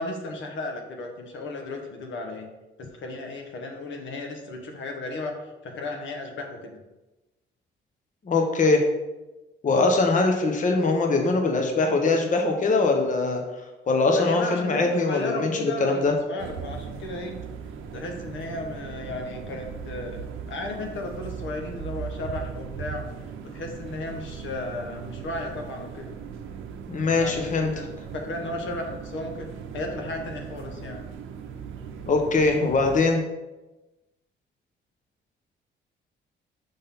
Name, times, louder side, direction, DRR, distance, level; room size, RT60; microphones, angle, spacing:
voice 1, 0.0-2.5 2.8-6.8 14.2-17.3 17.9-23.0 23.4-26.1 27.1-27.9 28.1-29.5 29.7-31.1, left 2 dB, 70° left, 3 dB, 1.1 m, -34 dB
voice 2, 8.3-8.8 9.6-13.4 13.9-16.1 26.9-27.7 32.1-33.2, left 3 dB, 40° left, 3 dB, 0.9 m, -22 dB
sound 1, 16.4-33.0, right 7 dB, 85° right, 0.7 m, -38 dB
5.4 x 3.6 x 5.7 m, 1.1 s
cardioid pair, 90°, 20 cm